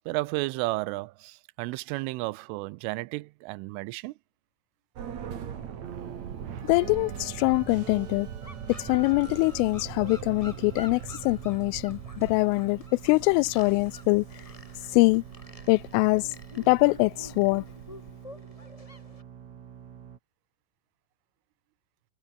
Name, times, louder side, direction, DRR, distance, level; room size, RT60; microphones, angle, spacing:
voice 1, 0.1-4.1, right 22 dB, 85° right, 3.2 m, -32 dB
sound 1, 5.0-20.2, right 8 dB, 50° right, 2.5 m, -41 dB
voice 2, 6.7-8.3 8.9-11.0 11.3-12.8 13.0-14.2 14.9-15.2 15.7-16.2 16.7-17.6, left 26 dB, 90° left, 3.1 m, -23 dB
sound 2, 8.4-19.2, left 2 dB, 15° left, 1.4 m, -49 dB
omnidirectional pair, 5.6 m